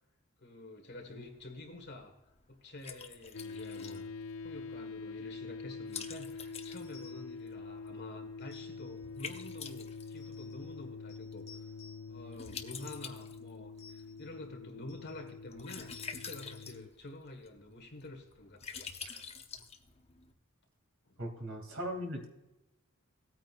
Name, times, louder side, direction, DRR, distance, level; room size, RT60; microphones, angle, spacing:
voice 1, 0.4-2.2 2.5-4.0 4.4-11.7 12.1-18.9 21.1-21.2, left 2 dB, 55° left, 4 dB, 1.6 m, -49 dB
Liquid, 0.9-20.3, left 6 dB, 30° left, 0.9 m, -49 dB
sound 1, 3.3-16.9, left 4 dB, 75° left, 0.4 m, -45 dB
sound 2, 6.8-7.4 8.4-9.1 10.2-10.8 11.1-12.2 12.5-13.0 13.8-14.4 14.9-15.2 15.7-16.1, left 6 dB, 35° right, 3.4 m, -58 dB
voice 2, 21.2-22.3, equal, 65° right, 2 dB, 2.9 m, -39 dB
17.5 x 9.1 x 2.5 m, 0.96 s
head